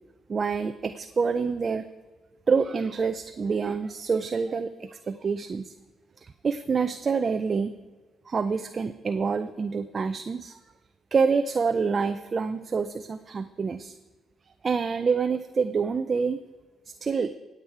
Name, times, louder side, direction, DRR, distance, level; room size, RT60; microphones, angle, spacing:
voice 1, 0.3-1.9 2.5-5.7 6.2-7.7 8.3-10.6 11.1-13.9 14.6-16.4 16.9-17.3, right 5 dB, 40° right, 10 dB, 0.6 m, -27 dB
19.5 x 8.1 x 4.8 m, 1.4 s
cardioid pair, 90°, 0 cm